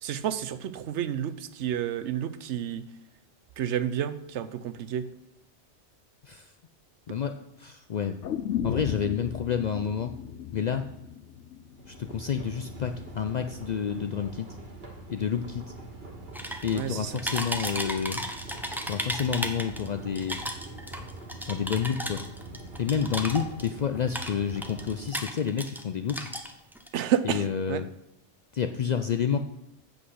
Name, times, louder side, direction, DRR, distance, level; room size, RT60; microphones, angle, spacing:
voice 1, 0.0-2.9 3.6-5.1 16.5-17.1 26.9-27.8, right 10 dB, 80° right, 13 dB, 0.9 m, -30 dB
voice 2, 7.1-8.2 8.6-10.1 10.5-10.9 11.9-14.5 15.1-15.8 16.6-18.2 18.9-20.4 21.4-22.2 22.8-26.3 27.2-27.9 28.5-29.4, left 7 dB, 60° left, 8 dB, 0.4 m, -29 dB
sound 1, 8.2-12.3 12.6-12.7, left 9 dB, 80° left, 1.0 m, -35 dB
sound 2, 11.7-25.1, right 1 dB, 60° right, 1.9 m, -43 dB
sound 3, 16.3-16.9 17.2-19.9 20.2-23.8 24.1-25.8 26.1-26.9, equal, ahead, 0.7 m, -34 dB
8.0 x 6.0 x 6.3 m, 0.83 s
omnidirectional pair, 1.2 m